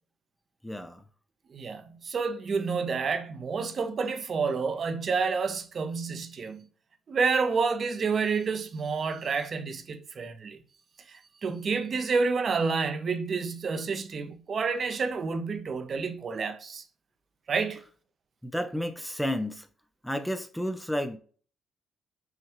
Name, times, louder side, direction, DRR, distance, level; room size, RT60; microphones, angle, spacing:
voice 1, 0.6-1.0 18.4-19.7 20.0-21.2, equal, 5° left, 0.5 m, -31 dB
voice 2, 1.5-6.6 7.1-10.6 11.1-16.8 17.5-17.8, right 5 dB, 50° right, 0.7 m, -29 dB
5.7 x 2.3 x 2.9 m
cardioid pair, 90°, 0 cm